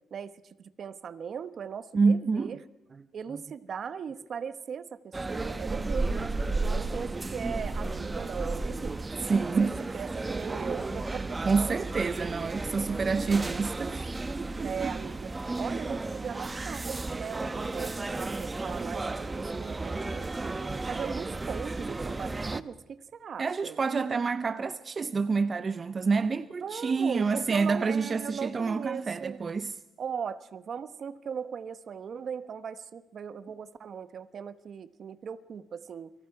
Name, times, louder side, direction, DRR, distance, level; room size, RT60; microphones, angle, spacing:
voice 1, 0.1-2.6 3.1-9.0 9.5-11.4 14.6-20.6 20.9-23.8 26.6-29.4 30.0-36.1, right 7 dB, 55° right, 1.1 m, -38 dB
voice 2, 1.9-2.6 9.3-10.1 11.4-14.9 23.4-29.7, right 4 dB, 35° right, 0.7 m, -28 dB
sound 1, 5.1-22.6, right 3 dB, 20° right, 0.9 m, -33 dB
29.0 x 23.5 x 4.8 m
cardioid pair, 90°, 0 cm